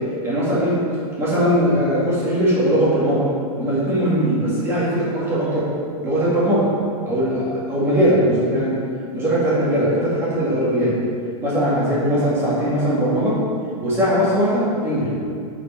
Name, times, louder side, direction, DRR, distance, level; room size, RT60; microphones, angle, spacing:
voice 1, 0.2-0.8 1.2-3.3 3.6-5.7 6.0-6.7 7.1-8.8 9.1-11.0 11.4-13.4 13.8-15.1, equal, 15° right, -8 dB, 2.0 m, -20 dB
9.4 x 5.1 x 4.6 m, 2.4 s
supercardioid pair, 175°, 19 cm